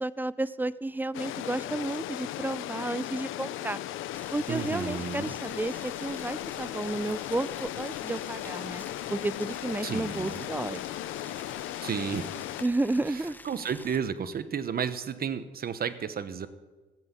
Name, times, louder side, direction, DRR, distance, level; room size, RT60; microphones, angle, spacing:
voice 1, 0.0-3.8 4.3-8.8 9.1-10.8 12.6-13.4, right 2 dB, 10° right, 18 dB, 0.4 m, -32 dB
sound 1, 1.1-12.6, left 13 dB, 85° left, 0.6 m, -37 dB
Boiling, 4.1-14.0, left 2 dB, 10° left, 0.8 m, -49 dB
voice 2, 4.5-5.3 9.8-10.5 11.8-12.3 13.4-16.5, right 7 dB, 50° right, 13 dB, 1.1 m, -32 dB
15.0 x 8.0 x 8.3 m, 1.3 s
cardioid pair, 90°, 20 cm